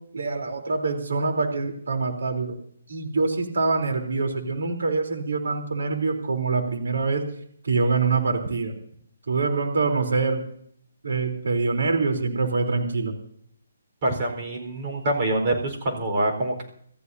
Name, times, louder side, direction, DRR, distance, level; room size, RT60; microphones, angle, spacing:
voice 1, 0.1-2.6 2.9-7.2 7.6-8.7 9.3-10.4 11.0-13.1, right 4 dB, 80° right, 3 dB, 3.6 m, -25 dB
voice 2, 14.0-16.6, right 1 dB, 30° right, 1 dB, 4.4 m, -25 dB
27.5 x 14.5 x 2.8 m, 0.65 s
hypercardioid pair, 165°, 0 cm